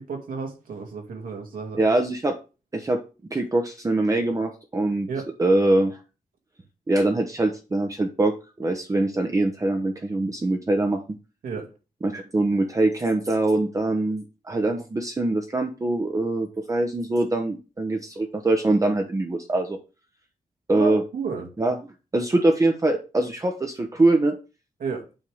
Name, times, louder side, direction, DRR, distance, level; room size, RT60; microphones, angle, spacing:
voice 1, 0.0-1.8 5.1-5.3 11.4-11.6 20.7-21.5 24.8-25.0, right 5 dB, 85° right, 1 dB, 2.4 m, -31 dB
voice 2, 1.8-2.4 2.7-3.0 3.3-5.1 5.4-6.0 6.9-11.0 12.0-19.8 20.7-21.0 21.6-21.8 22.1-24.3, right 2 dB, 25° right, 4 dB, 1.0 m, -23 dB
8.9 x 3.6 x 6.3 m, 0.32 s
wide cardioid pair, 125°, 14 cm